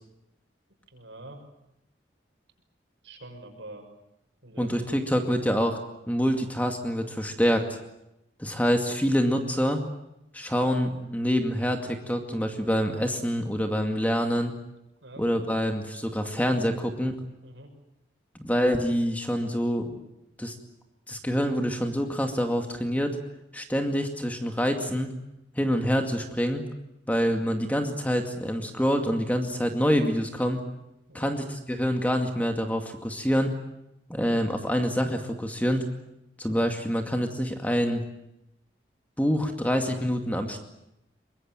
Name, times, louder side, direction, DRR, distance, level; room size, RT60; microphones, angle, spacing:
voice 1, 0.9-1.4 3.0-3.9 4.4-5.0 15.0-15.2 17.4-17.7 31.1-31.3, right 2 dB, 80° right, 4 dB, 6.4 m, -45 dB
voice 2, 4.6-5.8 6.1-7.7 8.4-9.8 10.3-14.5 15.2-17.2 18.4-19.9 20.4-20.6 21.1-23.2 23.5-25.1 25.6-26.6 27.1-30.6 31.1-33.5 34.1-35.9 36.4-38.0 39.2-40.6, equal, 10° left, 4 dB, 2.2 m, -26 dB
23.5 x 21.5 x 9.1 m, 0.85 s
head